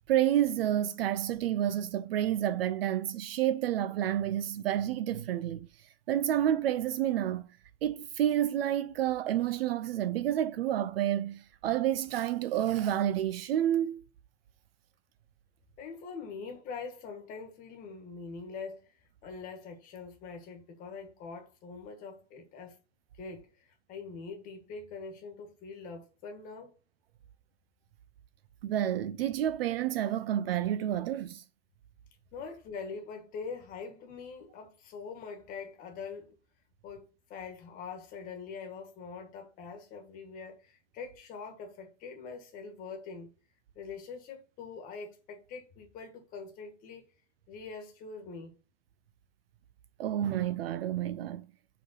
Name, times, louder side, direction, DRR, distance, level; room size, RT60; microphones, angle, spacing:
voice 1, 0.1-5.7 6.1-7.5 7.8-14.0 28.6-31.4 50.0-51.5, right 11 dB, 55° right, 0.5 m, -29 dB
voice 2, 15.8-18.8 19.2-22.8 23.2-26.7 32.3-36.3 36.8-43.3 43.7-47.0 47.5-48.5, left 5 dB, 20° left, 1.4 m, -43 dB
5.0 x 4.8 x 6.2 m
supercardioid pair, 170°, 37 cm